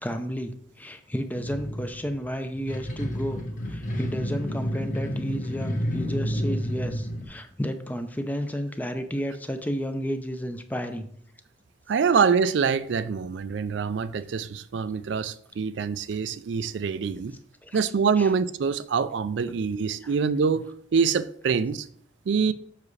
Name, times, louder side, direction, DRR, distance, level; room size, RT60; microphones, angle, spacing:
voice 1, 0.0-11.1 17.6-17.8 18.2-18.3 20.0-20.1, equal, 10° left, 0.5 m, -32 dB
sound 1, 1.4-7.3, equal, 45° left, 1.3 m, -30 dB
voice 2, 11.9-17.3 17.7-20.7 20.9-21.9 22.3-22.5, right 5 dB, 75° right, 0.4 m, -25 dB
7.3 x 5.9 x 3.2 m
head